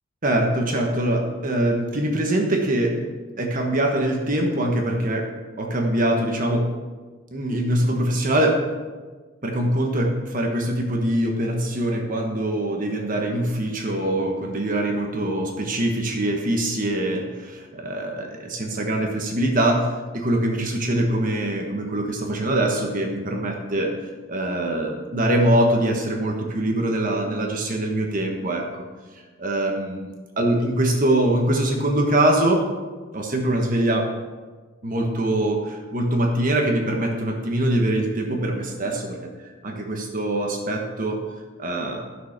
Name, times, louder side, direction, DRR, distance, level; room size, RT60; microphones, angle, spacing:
voice 1, 0.2-3.1 3.4-5.3 5.6-6.7 7.3-8.6 9.4-19.9 20.1-23.9 24.3-28.8 29.4-32.6 33.1-34.1 34.8-41.2 41.6-42.0, right 1 dB, 40° right, 1 dB, 1.3 m, -23 dB
13.0 x 6.6 x 5.9 m, 1.4 s
head